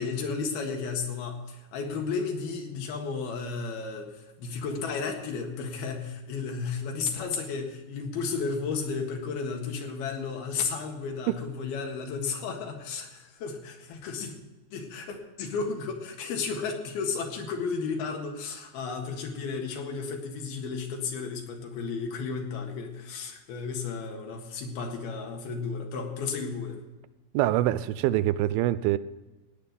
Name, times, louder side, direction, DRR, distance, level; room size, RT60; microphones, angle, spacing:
voice 1, 0.0-14.4 14.7-26.8, left 5 dB, 80° left, 3 dB, 3.6 m, -33 dB
voice 2, 27.3-29.0, right 14 dB, 85° right, 15 dB, 2.3 m, -24 dB
16.5 x 9.6 x 5.4 m, 1.1 s
omnidirectional pair, 4.4 m